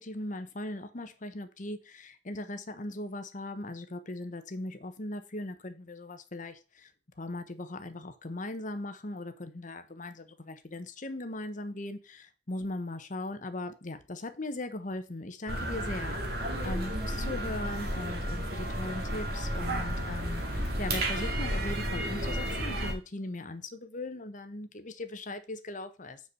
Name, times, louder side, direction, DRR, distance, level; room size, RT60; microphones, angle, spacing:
voice 1, 0.0-6.9 7.2-26.2, left 2 dB, 45° left, 1.0 m, -39 dB
sound 1, 15.5-22.9, right 1 dB, 60° right, 2.2 m, -32 dB
6.8 x 4.7 x 6.9 m
head